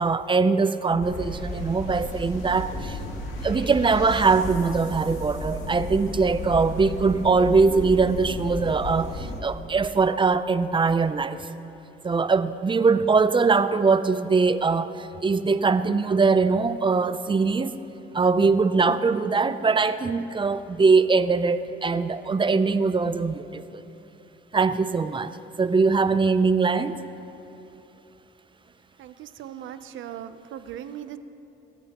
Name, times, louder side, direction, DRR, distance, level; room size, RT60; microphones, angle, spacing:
voice 1, 0.0-3.0 3.4-11.4 12.0-17.8 18.1-23.8 24.5-27.0, right 4 dB, 25° right, 13 dB, 0.5 m, -22 dB
sound 1, 1.0-9.4, left 1 dB, 80° left, 2.1 m, -34 dB
voice 2, 29.0-31.2, right 10 dB, 75° right, 12 dB, 0.7 m, -39 dB
24.5 x 13.5 x 3.0 m, 2.9 s
cardioid pair, 90°, 20 cm